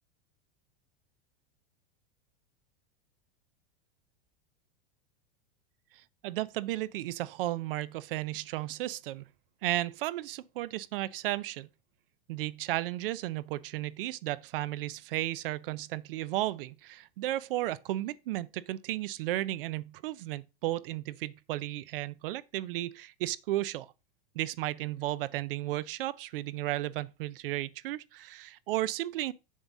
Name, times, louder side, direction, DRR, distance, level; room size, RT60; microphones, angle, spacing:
voice 1, 5.9-9.2 9.6-11.7 12.3-23.9 24.3-29.3, right 15 dB, 60° right, 0.5 m, -34 dB
7.3 x 4.1 x 5.9 m
supercardioid pair, 170°, 31 cm